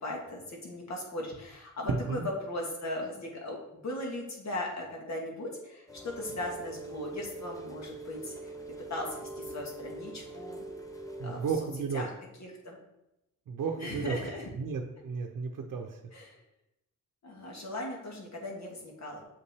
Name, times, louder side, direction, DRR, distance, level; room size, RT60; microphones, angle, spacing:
voice 1, 0.0-8.5 8.9-10.7 11.2-11.4 11.9-12.1 12.4-12.8 13.8-14.5 16.1-16.4 17.2-19.2, left 1 dB, 60° left, 0 dB, 1.6 m, -38 dB
voice 2, 1.9-2.3 11.2-12.0 13.5-14.2 14.6-16.0, right 5 dB, 85° right, 2 dB, 0.7 m, -33 dB
Rain, 5.9-11.5, right 2 dB, 10° left, 0.6 m, -43 dB
7.4 x 5.3 x 3.4 m, 0.91 s
wide cardioid pair, 140°, 31 cm